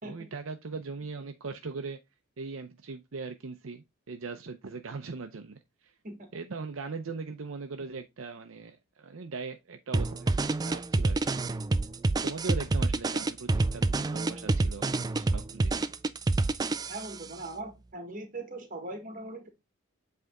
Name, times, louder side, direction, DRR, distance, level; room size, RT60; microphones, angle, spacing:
voice 1, 0.0-2.0 2.4-5.9 6.3-11.5 12.2-15.8, right 4 dB, 70° right, 0.6 m, -40 dB
sound 1, 9.9-17.2, right 2 dB, 20° right, 0.3 m, -27 dB
voice 2, 16.9-19.5, right 2 dB, 40° right, 1.5 m, -40 dB
7.9 x 3.4 x 3.6 m
head